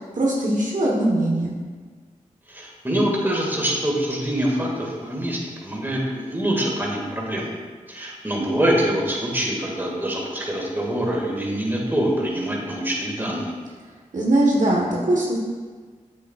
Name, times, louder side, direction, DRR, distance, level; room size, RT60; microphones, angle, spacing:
voice 1, 0.0-1.5 14.1-15.4, right 1 dB, 65° right, -3 dB, 1.2 m, -21 dB
voice 2, 2.5-7.5 7.9-13.6, right 1 dB, 15° right, -2 dB, 2.0 m, -25 dB
7.9 x 7.5 x 2.4 m, 1.5 s
cardioid pair, 40°, 14 cm